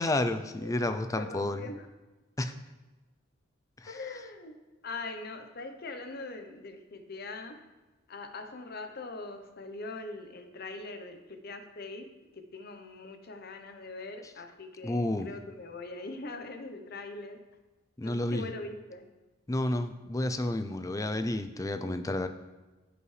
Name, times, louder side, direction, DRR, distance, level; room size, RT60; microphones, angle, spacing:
voice 1, 0.0-1.6 2.4-2.5 3.8-4.0 14.8-15.3 18.0-18.5 19.5-22.3, left 1 dB, 15° left, 9 dB, 0.4 m, -30 dB
voice 2, 1.2-1.9 3.9-4.6 4.8-7.5 8.1-12.1 12.3-17.4 18.0-19.1, left 3 dB, 50° left, 6 dB, 0.8 m, -42 dB
14.5 x 5.0 x 3.3 m, 1.2 s
head